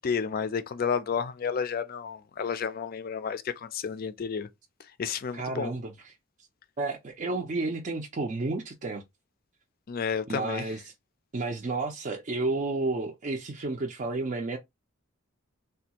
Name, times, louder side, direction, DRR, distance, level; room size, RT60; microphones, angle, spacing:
voice 1, 0.0-4.5 5.0-5.7 9.9-10.7, left 6 dB, 45° left, 0.4 m, -31 dB
voice 2, 5.3-6.1 6.8-9.0 10.3-10.8 11.3-14.6, right 3 dB, 35° right, 0.4 m, -31 dB
3.4 x 2.3 x 2.8 m
head